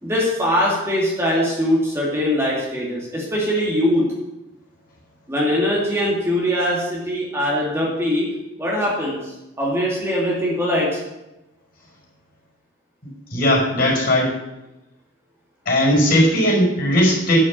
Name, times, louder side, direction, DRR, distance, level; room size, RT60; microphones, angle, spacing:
voice 1, 0.0-4.1 5.3-8.3 8.6-11.0, equal, 15° right, -5 dB, 2.3 m, -21 dB
voice 2, 13.3-14.3 15.7-17.4, equal, 45° left, -2 dB, 5.1 m, -17 dB
10.5 x 6.4 x 7.4 m, 0.98 s
head